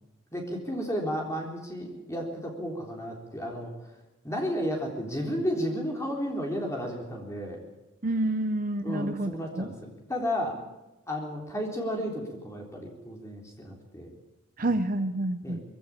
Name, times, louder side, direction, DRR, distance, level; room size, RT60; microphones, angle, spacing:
voice 1, 0.3-3.7 4.2-7.6 8.8-10.6 11.1-14.1 14.6-14.7 15.4-15.6, equal, 15° left, 1 dB, 3.8 m, -33 dB
voice 2, 8.0-9.3 9.6-9.7 14.6-15.6, right 1 dB, 40° right, 10 dB, 0.8 m, -28 dB
21.0 x 16.0 x 8.6 m, 1.0 s
head